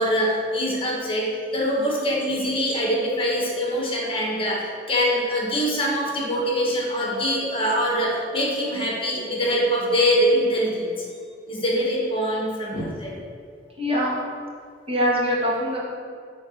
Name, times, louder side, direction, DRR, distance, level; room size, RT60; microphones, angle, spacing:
voice 1, 0.0-11.0 11.5-13.1, equal, 30° left, -3 dB, 1.6 m, -24 dB
voice 2, 13.8-14.1 14.9-15.8, equal, 30° right, -5 dB, 1.8 m, -23 dB
9.5 x 4.0 x 6.4 m, 2.2 s
head